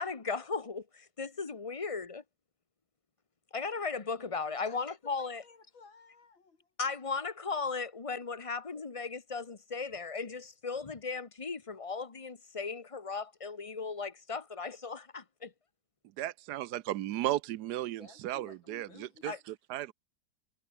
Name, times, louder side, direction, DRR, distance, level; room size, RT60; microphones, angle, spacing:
voice 1, 0.0-2.2 3.5-5.4 6.8-15.5 19.3-19.4, left 4 dB, 25° left, 0.9 m, -37 dB
voice 2, 4.7-6.7 18.0-19.4, left 4 dB, 85° left, 4.2 m, -56 dB
voice 3, 16.2-19.9, right 14 dB, 70° right, 1.1 m, -35 dB
omnidirectional pair, 2.1 m